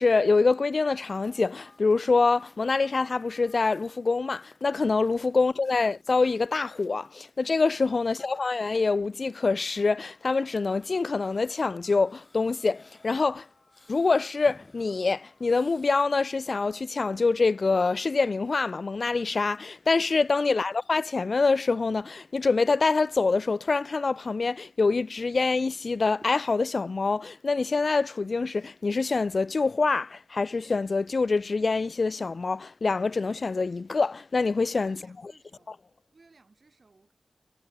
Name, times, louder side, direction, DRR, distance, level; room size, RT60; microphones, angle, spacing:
voice 1, 0.0-13.5 13.9-35.3, left 4 dB, 65° left, 0.3 m, -25 dB
sound 1, 1.2-16.0, left 2 dB, 40° left, 2.7 m, -59 dB
sound 2, 23.5-29.9 30.2-31.5, right 1 dB, 20° right, 6.9 m, -67 dB
voice 2, 34.8-35.8 36.1-37.1, right 3 dB, 60° right, 5.4 m, -61 dB
wide cardioid pair, 90°, 0 cm